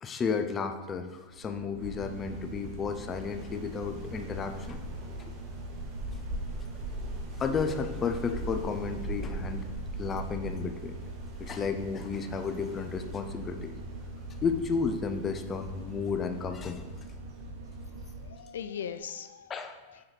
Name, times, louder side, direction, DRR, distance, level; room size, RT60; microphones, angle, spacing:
voice 1, 0.0-4.8 5.2-5.3 7.0-7.1 7.4-9.7 10.0-10.9 11.4-13.8 14.4-16.8 19.5-19.7, left 5 dB, 25° left, 7 dB, 0.5 m, -33 dB
sound 1, 1.2-18.6 19.0-19.1, right 6 dB, 80° right, 0.5 m, -49 dB
sound 2, 1.8-18.3, right 1 dB, 35° right, 1.8 m, -40 dB
voice 2, 18.2-20.0, left 8 dB, 90° left, 10 dB, 0.3 m, -41 dB
7.3 x 3.1 x 4.3 m, 1.2 s
hypercardioid pair, 125°, 0 cm